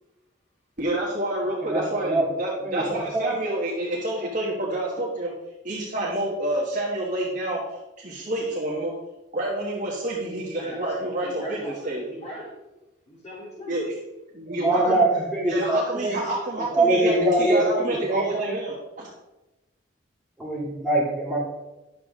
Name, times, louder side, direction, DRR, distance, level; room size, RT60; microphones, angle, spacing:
voice 1, 0.8-5.3 5.6-7.6 8.0-8.9 9.3-12.0 13.7-13.9 14.3-15.0 15.5-19.1, right 1 dB, 45° right, -4 dB, 1.5 m, -28 dB
voice 2, 1.6-2.2 2.6-3.3 14.5-16.2 16.7-18.5 20.4-21.4, right 1 dB, ahead, -7 dB, 2.6 m, -23 dB
voice 3, 10.6-12.5 13.1-13.8, equal, 35° left, -5 dB, 3.2 m, -39 dB
10.5 x 7.1 x 3.7 m, 1.0 s
head